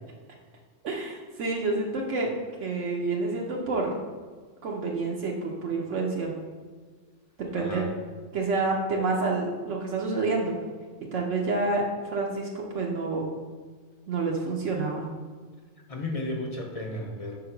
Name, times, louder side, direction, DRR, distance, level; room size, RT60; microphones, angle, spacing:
voice 1, 0.8-2.3 2.6-3.9 4.6-6.3 7.5-7.8 8.3-10.6 11.1-11.8 12.1-13.3 14.1-15.1, right 3 dB, 75° right, -1 dB, 1.1 m, -28 dB
voice 2, 7.5-7.9 15.9-17.4, left 1 dB, 35° left, 1 dB, 0.7 m, -33 dB
4.6 x 3.8 x 5.7 m, 1.5 s
omnidirectional pair, 1.3 m